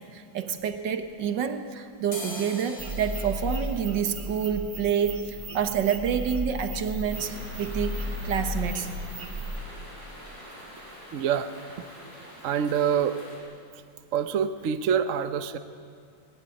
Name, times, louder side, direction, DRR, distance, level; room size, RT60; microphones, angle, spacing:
voice 1, 0.0-8.9, right 8 dB, 70° right, 9 dB, 1.8 m, -28 dB
sound 1, 0.6-1.6 1.9-9.6 10.0-10.1 10.3-10.9 11.2-11.4 11.7-11.9 12.2-12.9 13.2-13.4 13.9-14.0 14.3-14.4, left 1 dB, 30° left, 3.0 m, -46 dB
sound 2, 2.8-9.6, equal, 40° right, 2.0 m, -34 dB
sound 3, 7.1-13.4, equal, 55° left, 7.0 m, -45 dB
voice 2, 11.1-11.5 12.4-13.2 14.1-15.6, right 8 dB, 55° right, 11 dB, 0.9 m, -26 dB
19.0 x 17.0 x 10.0 m, 2.4 s
omnidirectional pair, 2.1 m